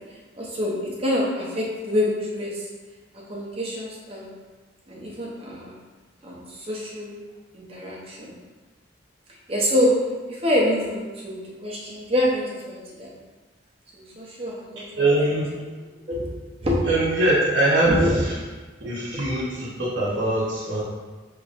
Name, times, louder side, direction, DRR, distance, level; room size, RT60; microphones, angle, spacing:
voice 1, 0.3-2.7 3.3-4.3 4.9-5.8 6.2-7.1 7.5-8.3 9.5-9.9 10.3-13.1 13.9-15.0 16.1-16.3 16.6-16.8 17.8-18.2 19.1-19.2, left 1 dB, 30° right, -4 dB, 0.7 m, -26 dB
voice 2, 15.0-15.5 16.9-18.3 18.8-20.8, right 1 dB, 70° right, -8 dB, 0.9 m, -22 dB
5.1 x 3.0 x 2.5 m, 1.3 s
head